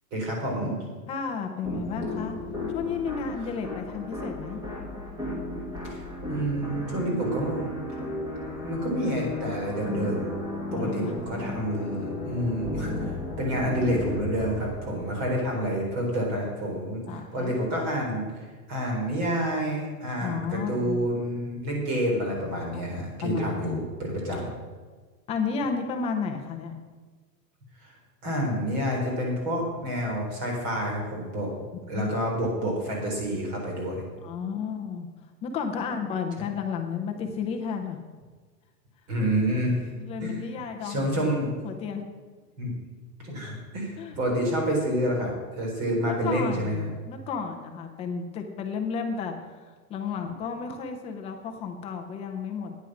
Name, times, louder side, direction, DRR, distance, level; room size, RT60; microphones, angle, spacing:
voice 1, 0.1-0.8 5.8-7.7 8.6-10.3 10.7-18.2 18.7-24.5 27.8-27.9 28.2-31.5 31.9-34.0 39.1-39.9 40.2-40.4 40.8-41.5 42.6-42.7 43.2-46.9, equal, 35° right, 0 dB, 4.1 m, -28 dB
voice 2, 1.1-2.4 2.7-4.6 10.7-11.1 13.4-13.5 17.1-17.6 20.2-21.0 22.7-23.9 25.3-26.8 31.9-32.1 34.2-35.1 35.4-38.0 39.9-41.3 41.6-42.0 44.0-44.2 46.0-52.7, left 6 dB, 15° left, 4 dB, 0.6 m, -33 dB
sound 1, 1.6-15.3, left 1 dB, 10° right, 1.9 m, -34 dB
9.6 x 9.1 x 6.2 m, 1.4 s
hypercardioid pair, 155°, 49 cm